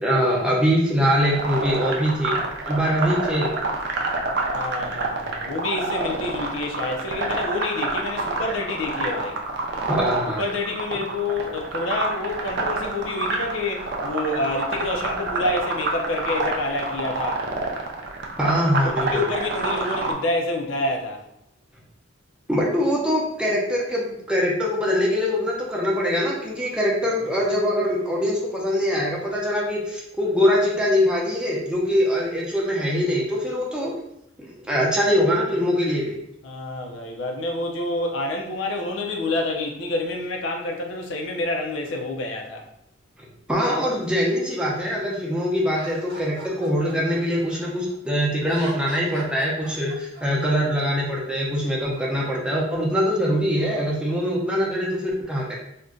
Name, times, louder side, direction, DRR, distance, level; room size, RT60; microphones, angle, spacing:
voice 1, 0.0-2.4 2.7-3.5 9.9-10.4 18.4-19.2 22.5-33.9 34.4-36.2 43.5-55.5, equal, 5° right, 0.5 m, -23 dB
sound 1, 1.2-20.1, right 3 dB, 60° right, 0.5 m, -27 dB
voice 2, 4.5-9.4 10.3-17.4 18.8-21.2 36.4-42.6, left 2 dB, 75° left, 0.5 m, -28 dB
Laughter, 45.7-47.9 48.4-50.2, right 1 dB, 85° right, 1.0 m, -40 dB
2.5 x 2.1 x 3.7 m
head